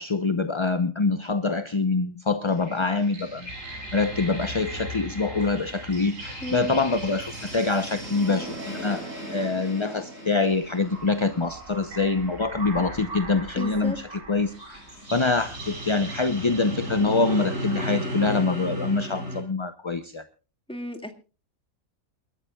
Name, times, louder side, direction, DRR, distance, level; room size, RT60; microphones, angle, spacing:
voice 1, 0.0-14.8 15.1-20.2, left 3 dB, 30° left, 9 dB, 0.6 m, -25 dB
sound 1, 2.5-19.4, right 1 dB, 65° right, 6.8 m, -36 dB
voice 2, 6.4-6.8 13.6-14.0 20.7-21.1, left 1 dB, 5° left, 5 dB, 2.0 m, -33 dB
29.0 x 13.0 x 2.3 m, 0.34 s
omnidirectional pair, 1.5 m